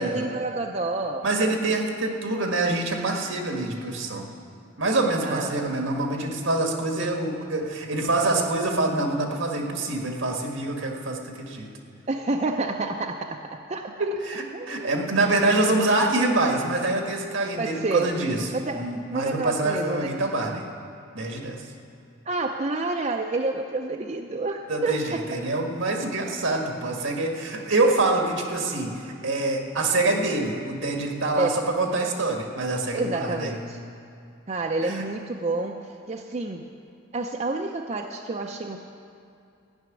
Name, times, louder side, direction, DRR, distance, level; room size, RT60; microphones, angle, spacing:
voice 1, 0.0-1.2 5.2-5.6 7.0-7.1 12.1-14.1 14.5-15.2 15.4-15.7 17.6-18.1 18.5-20.2 20.5-20.6 22.3-25.2 31.4-31.7 32.9-33.8 34.5-36.7 37.1-38.8, right 2 dB, 35° right, 2 dB, 0.5 m, -29 dB
voice 2, 1.2-4.3 4.8-11.7 14.0-18.4 18.7-20.6 21.1-21.7 24.7-33.5 34.8-35.0, right 2 dB, 70° right, 2 dB, 1.6 m, -25 dB
14.0 x 6.1 x 9.7 m, 2.6 s
head